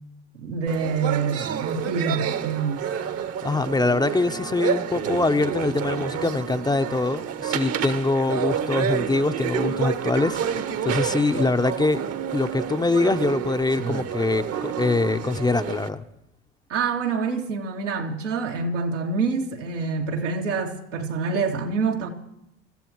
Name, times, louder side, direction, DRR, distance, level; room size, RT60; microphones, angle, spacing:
voice 1, 0.3-2.9 16.7-22.1, right 5 dB, 90° right, 2.5 m, -26 dB
sound 1, 0.7-15.9, right 9 dB, 45° right, 1.1 m, -29 dB
voice 2, 3.4-12.0 12.3-16.0, left 3 dB, 10° left, 0.7 m, -24 dB
27.0 x 14.5 x 3.1 m
hypercardioid pair, 85°, 36 cm